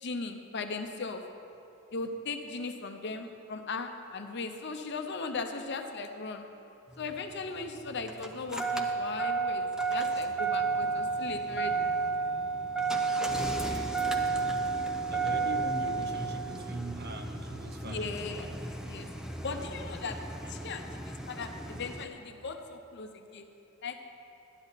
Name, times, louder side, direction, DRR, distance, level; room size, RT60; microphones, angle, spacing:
voice 1, 0.0-1.2 1.9-6.5 7.0-11.7 17.8-18.6 18.8-19.1 19.4-20.2 20.5-23.5 23.8-24.0, left 4 dB, 60° left, 6 dB, 0.7 m, -38 dB
Engine starting, 6.9-22.0, right 4 dB, 5° right, 0.6 m, -32 dB
voice 2, 13.3-14.0 15.1-18.1 20.2-20.5, right 2 dB, 55° right, 5 dB, 0.8 m, -41 dB
12.5 x 10.0 x 4.1 m, 2.7 s
head